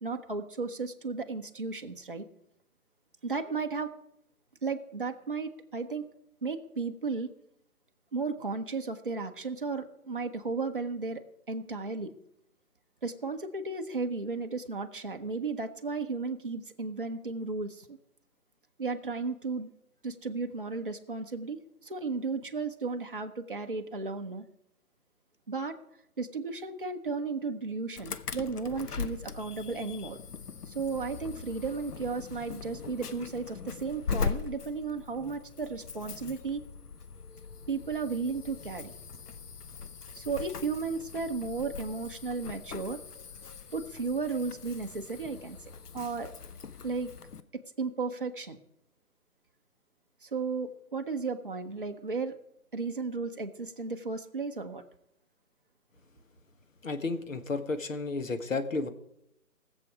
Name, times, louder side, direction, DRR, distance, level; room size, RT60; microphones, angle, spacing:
voice 1, 0.0-2.3 3.2-3.9 4.6-6.0 6.4-7.3 8.1-12.1 13.0-18.0 18.8-19.7 20.0-24.4 25.5-25.8 26.2-30.2 30.7-36.6 37.7-38.9 40.1-43.0 43.7-45.6 45.9-46.3 46.8-47.1 47.8-48.6 50.2-52.3 52.7-54.8, right 4 dB, 35° right, 5 dB, 0.8 m, -34 dB
Insect / Alarm, 28.0-47.4, left 6 dB, 85° left, 1.0 m, -41 dB
voice 2, 56.8-58.9, left 3 dB, 60° left, 8 dB, 1.4 m, -32 dB
19.0 x 7.4 x 4.8 m, 0.80 s
hypercardioid pair, 175°, 45 cm